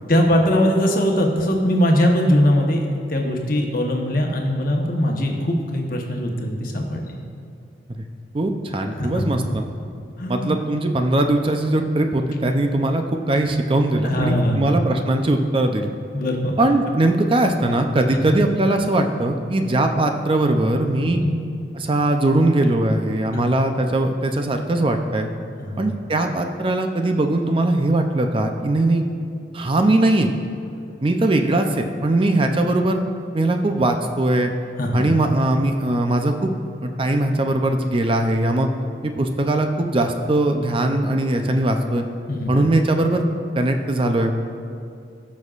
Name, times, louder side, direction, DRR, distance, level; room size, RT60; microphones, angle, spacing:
voice 1, 0.1-7.1 9.0-9.2 10.2-10.5 14.0-14.7 16.1-16.7 18.1-18.4 21.0-21.4 23.3-23.4 25.6-25.8 34.8-35.0 42.3-42.5, equal, 50° left, 1 dB, 1.1 m, -21 dB
voice 2, 8.3-9.6 10.3-15.9 16.6-21.2 21.8-25.3 25.8-29.0 29.5-30.3 31.0-33.0 33.3-34.5 34.9-36.5 36.8-38.7 39.0-42.0 42.5-43.2 43.6-44.3, right 1 dB, 30° right, 5 dB, 0.5 m, -20 dB
17.0 x 6.2 x 2.5 m, 2.6 s
head